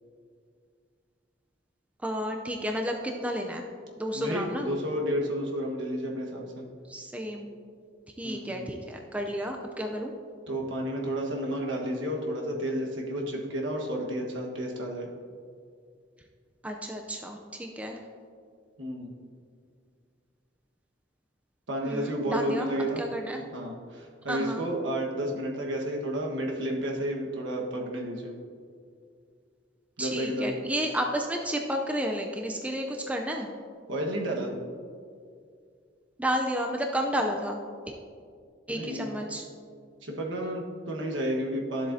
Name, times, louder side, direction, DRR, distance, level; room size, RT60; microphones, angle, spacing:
voice 1, 2.0-3.6 4.0-4.7 6.9-7.5 8.2-10.1 16.6-18.0 21.8-22.7 23.0-23.4 24.3-24.7 30.0-33.5 36.2-37.6 37.9-38.0 38.7-39.4, equal, 5° right, 2 dB, 0.4 m, -31 dB
voice 2, 4.1-6.7 8.2-8.6 10.5-15.1 18.8-19.1 21.7-23.0 23.5-28.3 30.0-30.6 33.9-34.5 38.7-39.1 40.0-41.9, equal, 75° right, -1 dB, 1.3 m, -31 dB
12.5 x 7.4 x 2.7 m, 2.2 s
head